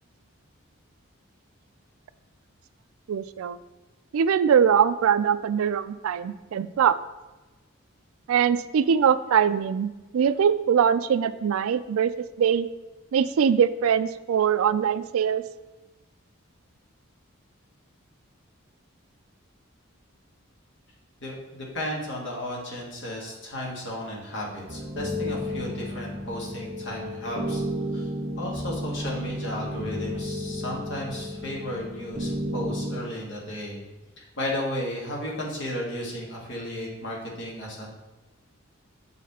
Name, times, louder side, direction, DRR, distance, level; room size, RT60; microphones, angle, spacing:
voice 1, 3.1-3.6 4.1-7.0 8.3-12.1 12.4-12.7 13.1-15.4, right 7 dB, 85° right, 14 dB, 0.3 m, -22 dB
voice 2, 21.2-27.6 27.9-28.1 28.4-33.8 34.2-37.9, left 1 dB, 55° left, -3 dB, 1.8 m, -34 dB
sound 1, 24.7-33.0, left 1 dB, 45° right, 1.1 m, -32 dB
7.2 x 4.2 x 4.2 m, 1.1 s
head